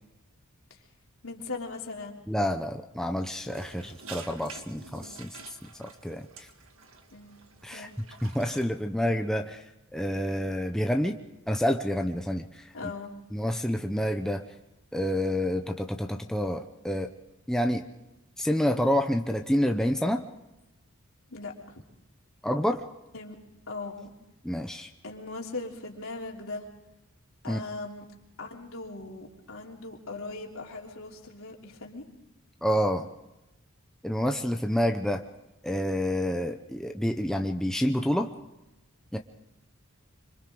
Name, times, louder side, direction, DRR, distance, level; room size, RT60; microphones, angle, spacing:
voice 1, 1.2-2.2 7.1-7.4 7.7-8.0 12.7-13.1 21.3-21.8 23.1-23.3 23.7-24.1 25.0-26.7 27.4-28.0 28.4-32.0, left 3 dB, 70° left, -1 dB, 3.3 m, -39 dB
voice 2, 2.3-5.3 5.8-6.5 7.6-9.6 9.9-11.2 11.5-12.7 13.3-14.4 14.9-17.1 17.5-17.8 18.4-20.2 22.4-22.8 24.4-24.9 27.5-27.6 32.6-33.1 34.0-35.2 35.6-38.3 39.1-39.2, equal, ahead, 4 dB, 0.7 m, -28 dB
sound 1, 3.4-8.6, right 4 dB, 70° right, 1.8 m, -48 dB
26.0 x 25.5 x 3.9 m, 0.94 s
head